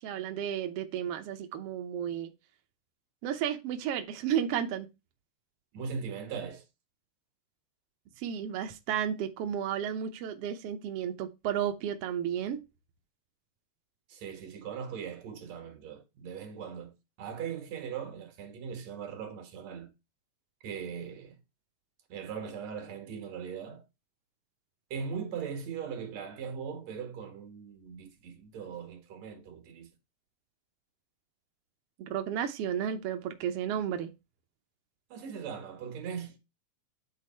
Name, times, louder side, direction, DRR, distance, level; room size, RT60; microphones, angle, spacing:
voice 1, 0.0-2.3 3.2-4.9 8.2-12.6 32.0-34.1, right 9 dB, 85° right, 1.3 m, -33 dB
voice 2, 5.7-6.6 14.1-19.9 20.6-21.4 22.1-23.8 24.9-29.9 35.1-36.4, right 6 dB, 55° right, 2.6 m, -39 dB
9.3 x 4.3 x 4.4 m
omnidirectional pair, 4.0 m